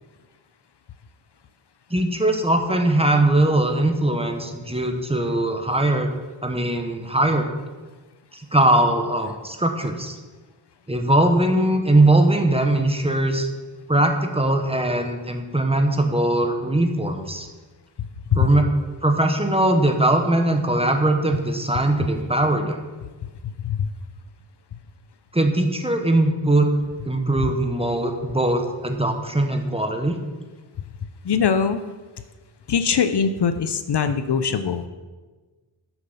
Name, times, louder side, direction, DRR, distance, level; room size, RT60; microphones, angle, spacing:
voice 1, 1.9-6.1 6.4-7.5 8.3-10.2 10.9-13.5 13.9-17.5 18.3-18.7 19.0-22.8 25.3-26.7 27.0-30.1, right 1 dB, 10° right, 4 dB, 1.0 m, -20 dB
voice 2, 23.4-23.9 31.2-31.8 32.7-34.8, left 7 dB, 55° left, 10 dB, 0.7 m, -22 dB
12.0 x 7.2 x 5.7 m, 1.3 s
wide cardioid pair, 140°, 50 cm